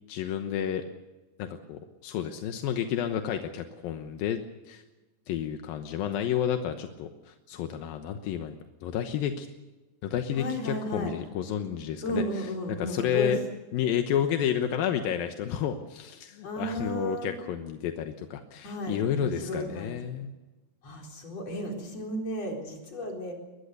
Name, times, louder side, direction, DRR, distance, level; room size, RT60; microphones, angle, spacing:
voice 1, 0.1-0.8 1.4-4.4 4.7-4.8 5.3-8.6 8.8-9.5 10.0-12.2 12.8-13.4 13.7-20.3, left 9 dB, 85° left, 6 dB, 2.9 m, -30 dB
voice 2, 10.4-11.1 12.0-13.3 16.4-17.5 18.6-20.0 20.8-23.3, equal, 45° left, 1 dB, 5.3 m, -34 dB
23.0 x 21.0 x 6.8 m, 1.1 s
omnidirectional pair, 4.0 m